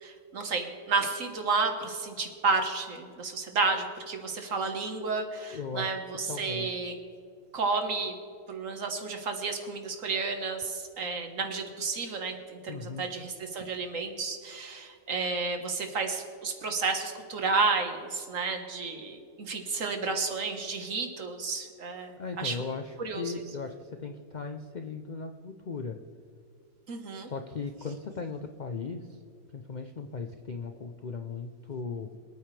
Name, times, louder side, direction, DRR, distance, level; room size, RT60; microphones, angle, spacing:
voice 1, 0.0-6.9 7.5-8.1 8.5-22.6 23.0-23.3 26.9-27.3, right 4 dB, 60° right, 5 dB, 1.7 m, -31 dB
voice 2, 5.5-5.9 6.3-6.7 12.7-13.1 22.2-26.0 27.1-29.1 29.5-32.2, left 4 dB, 55° left, 6 dB, 0.5 m, -37 dB
25.5 x 9.0 x 3.3 m, 2.3 s
omnidirectional pair, 1.6 m